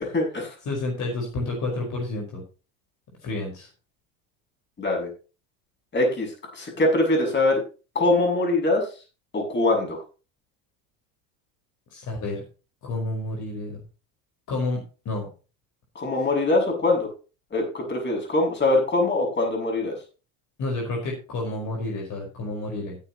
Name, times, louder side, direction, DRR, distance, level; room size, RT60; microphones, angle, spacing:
voice 1, 0.0-0.5 4.8-5.1 5.9-7.6 8.0-8.9 9.3-10.0 16.0-17.1 17.5-20.0, left 2 dB, 25° left, 1 dB, 7.1 m, -23 dB
voice 2, 0.7-2.4 3.2-3.7 11.9-12.5 12.8-13.8 14.5-15.3 20.6-23.0, left 2 dB, 45° left, 0 dB, 5.2 m, -30 dB
15.0 x 9.8 x 3.1 m, 0.33 s
supercardioid pair, 105°, 40 cm